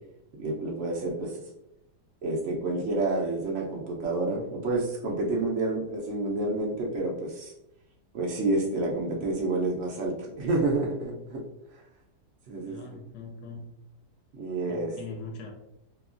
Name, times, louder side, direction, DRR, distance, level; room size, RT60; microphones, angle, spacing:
voice 1, 0.4-1.4 2.2-7.5 8.1-11.4 12.5-13.0 14.3-15.0, right 2 dB, 70° right, -2 dB, 0.7 m, -29 dB
voice 2, 12.6-13.7 14.7-15.5, left 3 dB, 90° left, 2 dB, 1.2 m, -41 dB
2.9 x 2.3 x 2.4 m, 0.87 s
omnidirectional pair, 1.7 m